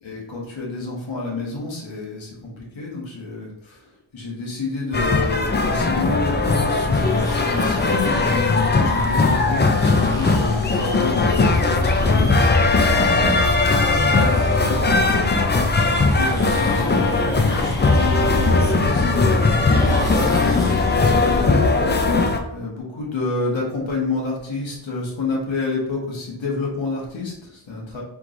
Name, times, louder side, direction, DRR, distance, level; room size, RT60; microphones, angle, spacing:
voice 1, 0.0-12.3 13.8-21.3 22.5-28.0, left 3 dB, 70° left, -3 dB, 1.5 m, -29 dB
sound 1, 4.9-22.4, left 3 dB, 25° left, 0.4 m, -19 dB
sound 2, 6.9-14.8 15.1-15.2 16.0-21.4, left 1 dB, 5° left, 0.8 m, -34 dB
4.6 x 3.7 x 2.6 m, 0.89 s
wide cardioid pair, 85°, 47 cm